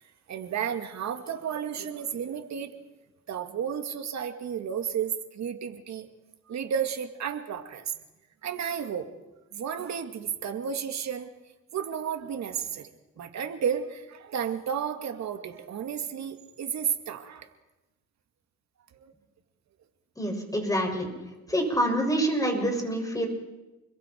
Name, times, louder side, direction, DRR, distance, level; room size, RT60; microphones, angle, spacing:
voice 1, 0.3-2.7 3.3-6.1 6.5-8.0 8.4-9.1 9.5-11.3 11.7-12.9 13.2-17.5 19.0-19.1, right 8 dB, 65° right, 6 dB, 2.4 m, -32 dB
voice 2, 20.2-21.1 21.5-23.3, right 1 dB, 10° left, 2 dB, 6.8 m, -26 dB
29.0 x 22.0 x 4.7 m, 1.0 s
cardioid pair, 90°, 30 cm